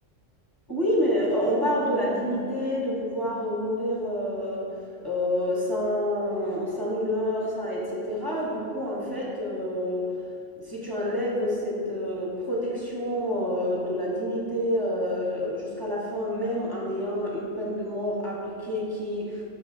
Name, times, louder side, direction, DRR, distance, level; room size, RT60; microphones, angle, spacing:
voice 1, 0.7-4.7 5.0-10.0 10.6-19.4, equal, 15° right, -5 dB, 1.2 m, -28 dB
13.0 x 4.5 x 2.7 m, 2.5 s
omnidirectional pair, 1.4 m